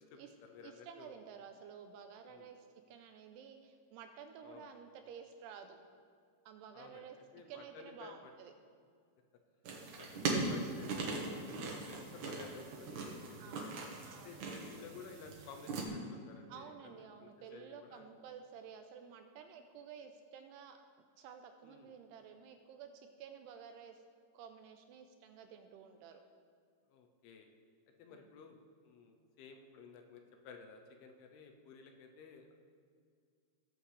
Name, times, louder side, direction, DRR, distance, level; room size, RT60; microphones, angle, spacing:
voice 1, 0.0-1.1 2.3-2.5 4.4-4.7 6.7-7.1 7.3-8.3 10.0-13.7 14.2-18.1 21.6-21.9 26.9-27.5 28.0-32.5, left 5 dB, 80° left, 4 dB, 2.4 m, -54 dB
voice 2, 0.6-5.8 6.5-7.2 7.5-8.5 11.5-11.9 13.4-13.7 14.1-14.6 16.5-20.8 21.2-24.0 24.3-26.2 28.1-28.3, right 7 dB, 85° right, 6 dB, 2.5 m, -52 dB
sound 1, 9.6-15.9, right 3 dB, 65° right, 2.0 m, -40 dB
18.5 x 7.5 x 3.3 m, 2.2 s
omnidirectional pair, 5.1 m